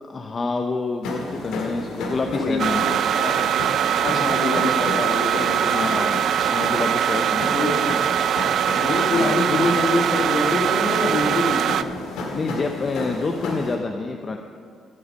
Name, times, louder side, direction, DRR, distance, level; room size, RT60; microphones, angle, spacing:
voice 1, 0.1-3.0 5.6-6.2 6.5-7.7 9.1-9.6 12.3-14.4, left 4 dB, 40° left, 4 dB, 0.6 m, -28 dB
sound 1, 1.0-13.7, left 2 dB, 85° left, 1.8 m, -32 dB
voice 2, 2.4-2.7 3.1-3.3 4.0-5.8 6.3-6.5 7.5-8.0 8.8-11.7, left 3 dB, 55° left, 3 dB, 1.4 m, -25 dB
sound 2, 2.6-11.8, right 9 dB, 65° right, 0.3 m, -22 dB
15.0 x 5.1 x 6.5 m, 2.3 s
cardioid pair, 90°, 0 cm